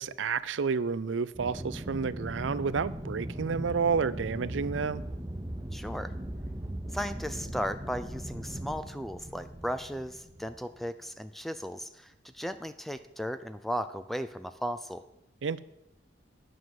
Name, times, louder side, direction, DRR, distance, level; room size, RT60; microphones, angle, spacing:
voice 1, 0.0-5.0 15.4-15.6, right 5 dB, 85° right, 17 dB, 0.5 m, -30 dB
Aircraft, 1.3-10.8, right 1 dB, 15° right, 0.9 m, -39 dB
voice 2, 5.7-6.1 6.9-15.0, equal, ahead, 11 dB, 0.3 m, -36 dB
9.4 x 6.4 x 7.6 m, 0.87 s
head